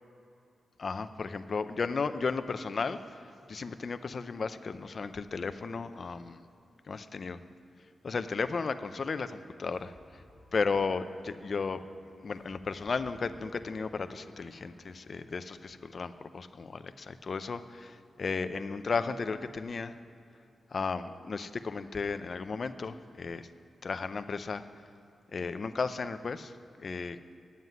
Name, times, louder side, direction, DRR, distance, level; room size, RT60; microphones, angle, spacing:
voice 1, 0.8-6.4 6.9-7.4 8.0-10.2 10.5-11.8 12.2-19.9 20.7-23.5 23.8-24.6 25.3-26.5 26.8-27.2, left 4 dB, 45° left, 11 dB, 0.5 m, -34 dB
sound 1, 9.7-15.7, left 1 dB, 15° left, 2.3 m, -58 dB
9.5 x 7.5 x 9.1 m, 2.7 s
wide cardioid pair, 130°, 0 cm